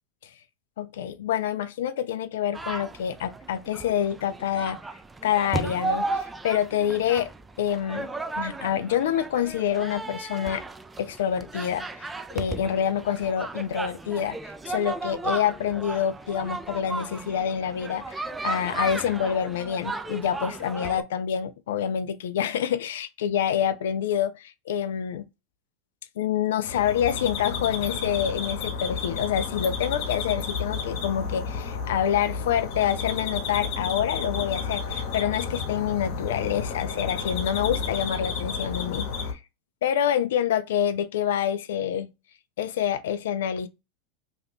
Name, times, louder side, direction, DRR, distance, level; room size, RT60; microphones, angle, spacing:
voice 1, 0.8-4.8 5.2-7.3 7.6-8.1 8.4-10.6 11.0-25.3 26.2-39.4 39.8-42.1 42.6-43.7, left 9 dB, 75° left, 0.4 m, -27 dB
sound 1, 2.5-21.0, right 3 dB, 15° right, 0.4 m, -35 dB
sound 2, 26.6-39.3, left 5 dB, 60° left, 1.0 m, -31 dB
2.8 x 2.4 x 3.5 m
hypercardioid pair, 95°, 0 cm